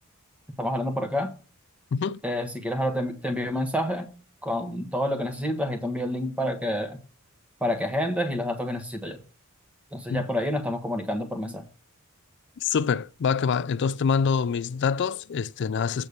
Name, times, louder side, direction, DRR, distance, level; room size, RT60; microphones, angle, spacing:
voice 1, 0.6-1.3 2.2-4.1 4.4-7.0 7.6-9.2 9.9-11.6, left 1 dB, 5° right, 1.2 m, -28 dB
voice 2, 12.6-16.1, left 6 dB, 55° left, 0.3 m, -25 dB
8.3 x 4.2 x 6.5 m
head